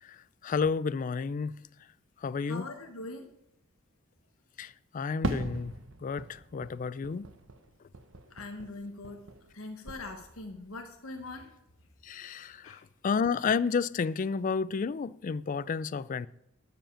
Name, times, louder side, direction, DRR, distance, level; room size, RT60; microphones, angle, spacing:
voice 1, 0.4-1.5 2.2-2.7 4.6-5.7 6.0-7.3 12.0-16.3, left 5 dB, 40° left, 0.3 m, -31 dB
voice 2, 2.5-3.3 8.3-9.2 9.5-11.5 12.6-12.8, left 2 dB, 85° left, 1.2 m, -42 dB
Fireworks, 5.2-9.6 9.8-10.6, right 2 dB, 65° right, 1.0 m, -40 dB
12.0 x 5.2 x 8.7 m
head